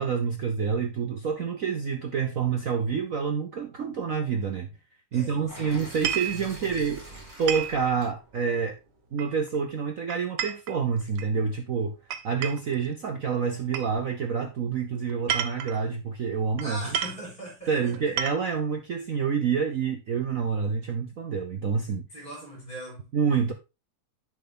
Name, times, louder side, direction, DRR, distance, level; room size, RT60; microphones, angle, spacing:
voice 1, 0.0-4.7 5.1-7.0 7.4-8.8 9.1-12.0 12.2-16.8 17.7-22.1 23.1-23.5, right 6 dB, 65° right, 0.8 m, -28 dB
voice 2, 5.1-6.0 6.3-7.0 16.6-17.9 22.1-23.1, right 1 dB, 15° left, 4.0 m, -40 dB
sound 1, 5.5-9.5, right 1 dB, 10° right, 4.0 m, -46 dB
sound 2, 5.9-6.4 7.5-7.8 9.2-9.6 10.1-11.3 12.1-12.7 13.7-13.9 15.1-15.8 16.6-16.7 16.9-17.2 17.9-18.6, right 9 dB, 85° right, 1.7 m, -31 dB
10.5 x 4.6 x 3.8 m
omnidirectional pair, 2.4 m